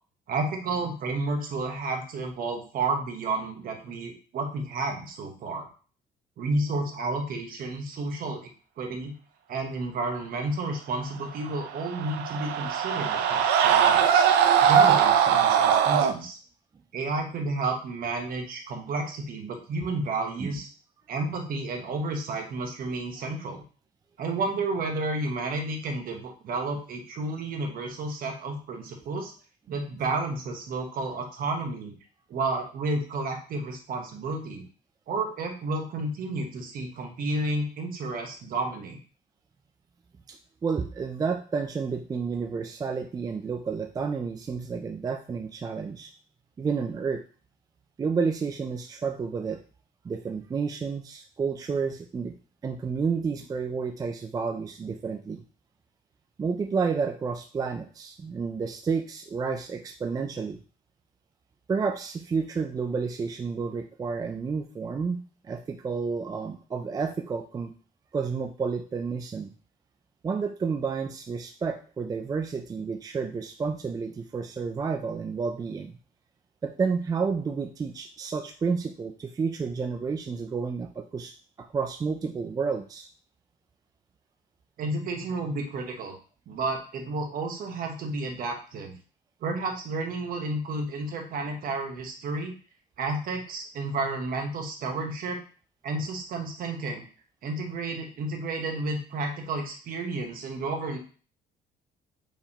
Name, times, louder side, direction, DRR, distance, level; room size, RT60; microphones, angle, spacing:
voice 1, 0.3-5.7 6.4-8.4 8.8-9.1 9.5-14.3 14.6-16.4 16.9-20.7 21.1-23.6 24.2-29.3 29.7-31.9 32.3-34.6 35.1-39.0 84.8-86.2 86.5-88.9 89.4-92.5 93.0-95.4 95.8-97.1 97.4-101.0, right 2 dB, 60° right, 3 dB, 1.1 m, -31 dB
sound 1, 11.7-16.1, right 8 dB, 85° right, 0.5 m, -21 dB
voice 2, 40.3-46.1 46.6-47.2 48.0-49.6 50.0-52.3 52.6-55.4 56.4-60.6 61.7-67.7 68.1-69.5 70.2-75.9 76.6-81.3 81.7-83.1, right 5 dB, 20° right, 5 dB, 0.4 m, -30 dB
4.7 x 3.4 x 2.9 m, 0.39 s
cardioid pair, 110°, 17 cm